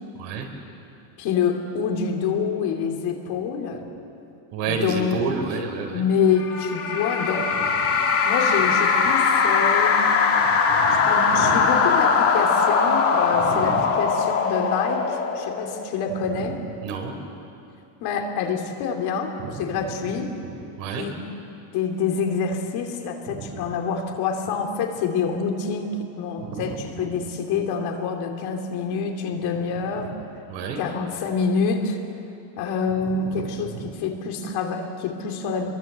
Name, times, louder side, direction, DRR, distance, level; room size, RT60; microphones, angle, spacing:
voice 1, 1.2-3.8 4.6-5.2 5.9-7.5 8.2-10.2 11.0-16.6 18.0-20.3 20.9-21.2 21.7-30.1 30.8-32.0 32.6-35.7, left 5 dB, 50° left, 3 dB, 2.9 m, -26 dB
voice 2, 4.5-6.0 7.9-8.0 10.4-11.7 13.4-13.8 16.3-16.4 16.8-17.1 19.4-20.1 20.8-21.1 23.3-23.6 26.4-26.6 27.0-27.1 30.5-30.8 33.2-33.4 33.7-33.8, right 5 dB, 65° right, 3 dB, 4.6 m, -31 dB
sound 1, 6.3-16.0, left 5 dB, 25° left, 2.2 m, -21 dB
26.5 x 22.5 x 8.1 m, 2.7 s
cardioid pair, 175°, 50 cm